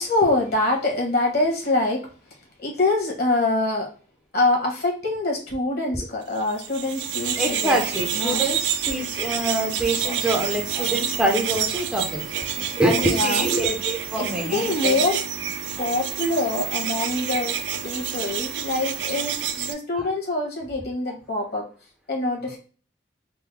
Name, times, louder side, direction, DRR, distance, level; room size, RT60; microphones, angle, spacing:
voice 1, 0.0-2.1 2.6-3.9 4.3-7.8 8.1-8.4 12.9-13.4 14.2-15.2 15.8-21.7 22.1-22.6, left 2 dB, 60° left, 1 dB, 1.2 m, -25 dB
sound 1, 6.5-19.7, right 9 dB, 85° right, 0.4 m, -28 dB
voice 2, 7.4-12.5 12.8-15.0 20.0-20.1, right 1 dB, 5° right, -1 dB, 0.6 m, -25 dB
3.7 x 2.1 x 3.3 m, 0.38 s
head